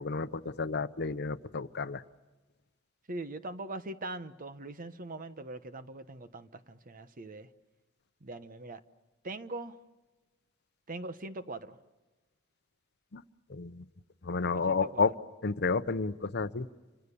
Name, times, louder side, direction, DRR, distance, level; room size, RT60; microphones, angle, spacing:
voice 1, 0.0-2.0 13.1-13.2 13.5-13.8 14.2-15.1 15.4-16.7, left 4 dB, 55° left, 0.8 m, -31 dB
voice 2, 3.1-7.5 8.2-8.8 9.2-9.8 10.9-11.8 14.4-15.1, right 2 dB, 45° right, 1.1 m, -41 dB
28.5 x 26.0 x 7.0 m
head